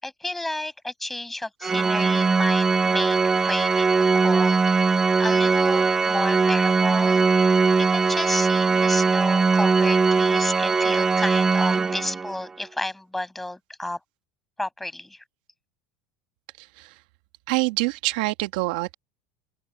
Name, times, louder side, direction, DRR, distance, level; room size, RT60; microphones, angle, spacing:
voice 1, 0.0-4.6 5.2-7.3 7.8-14.0 14.6-15.2, left 1 dB, 5° left, 6.5 m, -32 dB
Organ, 1.6-12.4, right 4 dB, 15° right, 0.9 m, -20 dB
voice 2, 17.5-18.9, right 22 dB, 75° right, 1.7 m, -25 dB
open air
cardioid pair, 160°, 4 cm